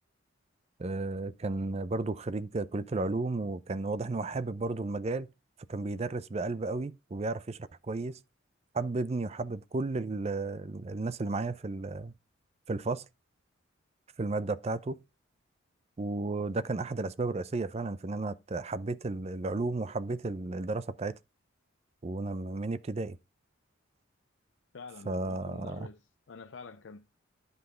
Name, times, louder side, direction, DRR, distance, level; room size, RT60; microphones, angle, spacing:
voice 1, 0.8-5.3 5.7-7.6 7.8-8.2 8.7-12.1 12.7-13.1 14.2-15.0 16.0-21.1 22.0-23.2 25.1-25.9, right 3 dB, 30° right, 0.4 m, -33 dB
voice 2, 24.7-27.1, left 4 dB, 60° left, 0.5 m, -48 dB
10.0 x 5.6 x 3.7 m
head